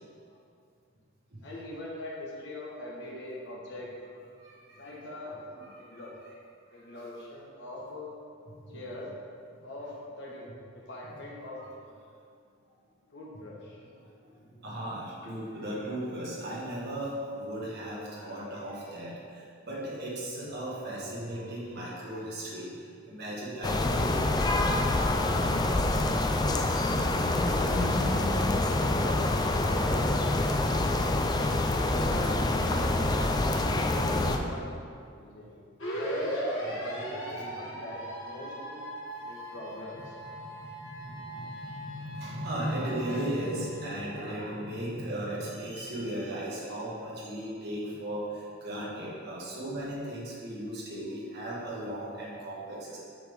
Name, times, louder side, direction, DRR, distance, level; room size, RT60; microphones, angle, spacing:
voice 1, 1.4-3.9 4.7-5.3 5.8-6.2 6.7-8.1 8.7-9.1 9.6-11.9 13.1-13.9 14.5-14.6 27.4-29.3 29.7-30.1 30.3-30.8 31.8-32.4 32.7-33.4 33.9-34.9 35.2-35.6 36.0-38.8 39.2-40.1, left 1 dB, 60° left, -4 dB, 1.4 m, -42 dB
voice 2, 4.4-4.8 5.3-6.1 8.7-8.8 11.6-11.7 14.6-22.8 23.1-24.4 25.6-25.9 26.8-27.6 36.1-36.3 38.4-38.5 39.9-40.0 40.4-53.0, right 1 dB, 55° right, -6 dB, 1.5 m, -37 dB
sound 1, 23.6-34.4, left 2 dB, 20° left, 0.3 m, -26 dB
sound 2, 35.8-43.8, equal, 80° left, 1.5 m, -38 dB
7.1 x 6.2 x 3.5 m, 2.3 s
head